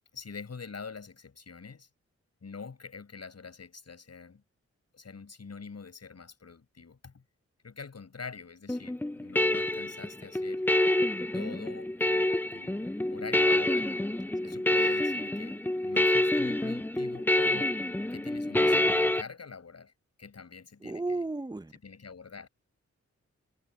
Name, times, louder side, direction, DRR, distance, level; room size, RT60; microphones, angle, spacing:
voice 1, 0.1-1.9 2.4-4.4 4.9-7.2 7.6-10.6 11.3-14.0 14.4-17.8 18.1-19.9 20.2-21.3 21.7-22.5, left 5 dB, 60° left, 7.2 m, -45 dB
sound 1, 8.7-19.2, left 1 dB, 5° left, 0.5 m, -27 dB
voice 2, 20.8-21.7, right 2 dB, 15° right, 1.0 m, -33 dB
cardioid pair, 65°, 29 cm